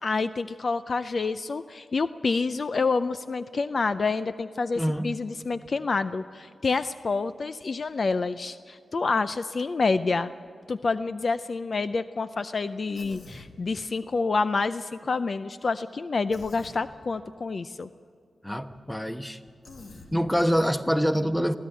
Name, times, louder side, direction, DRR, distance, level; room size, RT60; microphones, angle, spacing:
voice 1, 0.0-10.3 10.7-17.9, left 4 dB, 55° left, 12 dB, 0.5 m, -28 dB
voice 2, 4.8-5.1 18.4-19.4 20.1-21.5, equal, 10° left, 8 dB, 1.1 m, -25 dB
Human voice, 12.9-13.5 16.3-16.8 19.6-20.1, left 3 dB, 75° left, 2.0 m, -45 dB
22.5 x 15.5 x 9.0 m, 2.2 s
cardioid pair, 75°, 0 cm